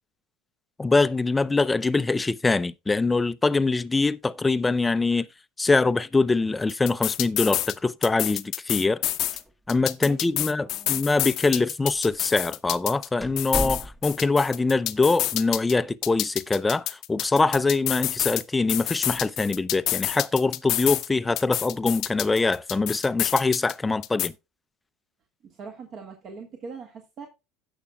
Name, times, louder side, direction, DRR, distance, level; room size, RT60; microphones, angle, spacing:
voice 1, 0.8-5.3 5.6-9.0 9.7-24.3, left 3 dB, 15° left, 0.5 m, -23 dB
sound 1, 6.7-7.7 8.0-9.4 9.7-13.1 13.4-15.7 16.0-18.4 18.7-21.1 21.4-23.7 24.0-24.3, left 15 dB, 55° left, 0.7 m, -28 dB
sound 2, 9.2-10.0 10.2-10.3 11.1-11.2 11.9-12.2 12.6-12.7 13.2-14.3, equal, 5° right, 1.0 m, -34 dB
voice 2, 10.0-11.1 25.4-27.3, right 5 dB, 45° right, 1.7 m, -42 dB
16.5 x 5.9 x 2.3 m
hypercardioid pair, 90°, 0 cm